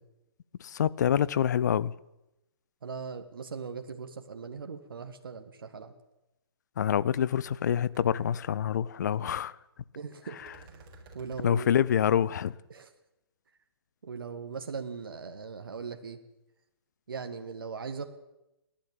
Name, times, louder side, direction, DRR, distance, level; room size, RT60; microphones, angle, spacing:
voice 1, 0.6-1.9 6.8-9.5 11.4-12.5, left 9 dB, 45° left, 0.7 m, -26 dB
voice 2, 2.8-5.9 10.0-11.7 12.7-12.9 14.0-16.2 17.1-18.1, right 5 dB, 60° right, 2.0 m, -40 dB
sound 1, 6.9-7.0 7.4-7.7 7.9-8.0 10.4-11.5, right 2 dB, 25° right, 4.5 m, -53 dB
29.5 x 12.0 x 8.8 m
figure-of-eight pair, 130°, 13 cm